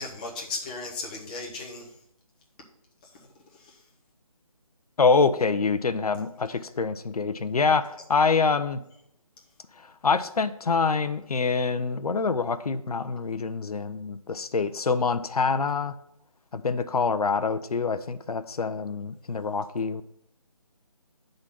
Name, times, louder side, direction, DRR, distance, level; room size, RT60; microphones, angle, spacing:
voice 1, 0.0-1.9 3.6-3.8, left 3 dB, 15° left, -2 dB, 0.9 m, -36 dB
voice 2, 5.0-8.8 9.8-15.9 16.5-20.0, left 4 dB, 80° left, 12 dB, 0.6 m, -25 dB
9.5 x 3.9 x 5.8 m, 0.77 s
figure-of-eight pair, 165°, 19 cm